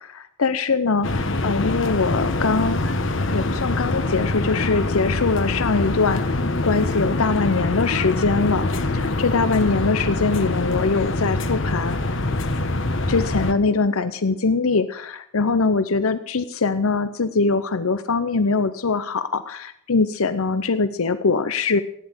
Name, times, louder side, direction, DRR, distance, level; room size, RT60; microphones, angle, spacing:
voice 1, 0.0-2.8 3.3-6.2 6.6-8.7 8.9-12.0 13.1-21.8, left 4 dB, 80° left, 11 dB, 0.8 m, -22 dB
sound 1, 1.0-13.5, left 2 dB, 60° left, 1.2 m, -24 dB
15.0 x 10.5 x 7.9 m, 0.69 s
head